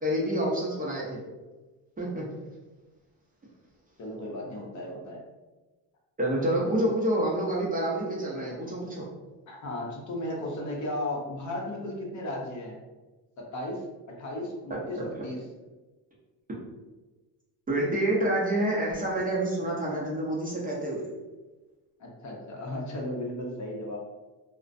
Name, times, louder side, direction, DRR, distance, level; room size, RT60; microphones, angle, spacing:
voice 1, 0.0-1.2 2.0-2.3 6.2-9.1 14.7-15.1 17.7-21.1, right 1 dB, 20° right, -5 dB, 0.6 m, -28 dB
voice 2, 4.0-5.2 9.5-12.8 13.4-13.8 14.1-15.4 22.0-24.0, left 1 dB, 40° left, -1 dB, 0.7 m, -35 dB
2.3 x 2.1 x 2.5 m, 1.2 s
supercardioid pair, 85°, 44 cm